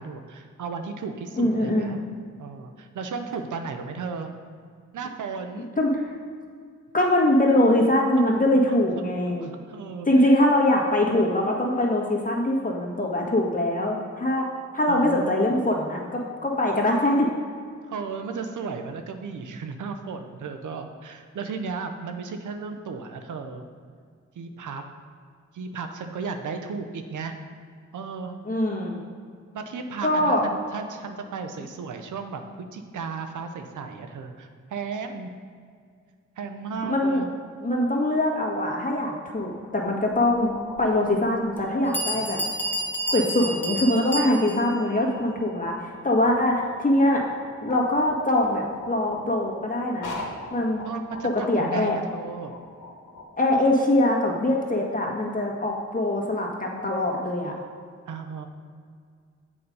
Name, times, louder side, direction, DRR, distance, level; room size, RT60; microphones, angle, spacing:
voice 1, 0.0-2.0 2.4-4.3 4.9-5.7 9.3-10.3 14.9-15.5 17.9-23.6 24.4-24.8 25.5-27.3 27.9-28.4 29.5-35.3 36.4-37.3 42.1-42.6 50.8-52.5 58.1-58.5, right 5 dB, 75° right, 6 dB, 0.7 m, -35 dB
voice 2, 1.4-1.9 5.8-6.1 6.9-9.5 10.0-14.4 14.7-17.3 28.4-29.0 30.0-30.4 36.8-37.2 37.6-42.4 43.1-45.7 46.0-47.2 47.6-50.1 50.5-50.8 51.3-52.0 53.4-57.5, left 1 dB, 25° left, -1 dB, 1.7 m, -23 dB
sound 1, 39.2-53.2, left 2 dB, 75° left, 1.2 m, -42 dB
Bell, 40.8-40.9 41.6-41.7 41.9-44.7, right 1 dB, 5° left, 1.2 m, -30 dB
7.0 x 5.0 x 5.4 m, 2.1 s
cardioid pair, 50°, 31 cm